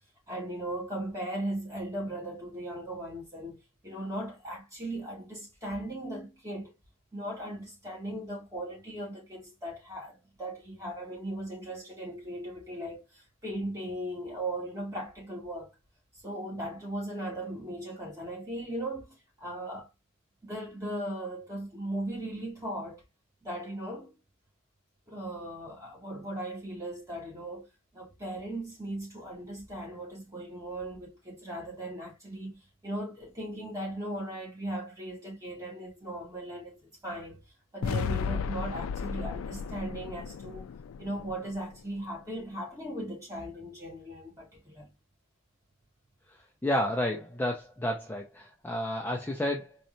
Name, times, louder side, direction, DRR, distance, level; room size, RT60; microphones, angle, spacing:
voice 1, 0.3-6.7 7.1-15.7 16.2-19.9 20.4-23.0 23.4-24.1 25.1-27.7 27.9-37.4 37.7-40.7 41.0-44.9, right 1 dB, 15° right, 2.4 m, -38 dB
sound 1, 37.8-42.0, left 6 dB, 75° left, 0.3 m, -34 dB
voice 2, 46.6-49.8, left 1 dB, 10° left, 0.6 m, -31 dB
4.2 x 3.2 x 2.6 m
head